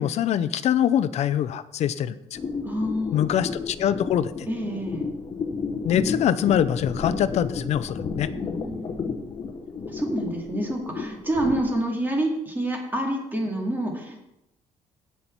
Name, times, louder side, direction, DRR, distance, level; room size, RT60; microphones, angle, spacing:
voice 1, 0.0-2.1 3.1-4.5 5.8-8.3, left 10 dB, 60° left, 14 dB, 0.6 m, -24 dB
sound 1, 2.3-11.6, left 5 dB, 35° left, 1.1 m, -32 dB
voice 2, 2.6-3.3 4.4-5.1 8.3-9.3 9.9-14.2, right 1 dB, 15° right, 0 dB, 2.2 m, -28 dB
16.0 x 5.6 x 4.5 m, 0.87 s
cardioid pair, 150°, 13 cm